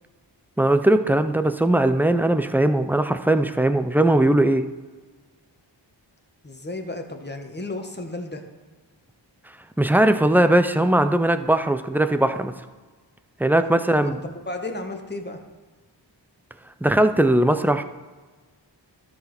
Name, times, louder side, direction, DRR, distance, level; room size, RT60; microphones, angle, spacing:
voice 1, 0.6-4.7 9.8-12.5 13.4-14.2 16.8-17.8, right 1 dB, 5° right, 9 dB, 0.6 m, -19 dB
voice 2, 6.4-8.4 13.6-15.4, left 2 dB, 20° left, 4 dB, 1.4 m, -34 dB
12.5 x 4.8 x 6.1 m, 1.3 s
wide cardioid pair, 45°, 45 cm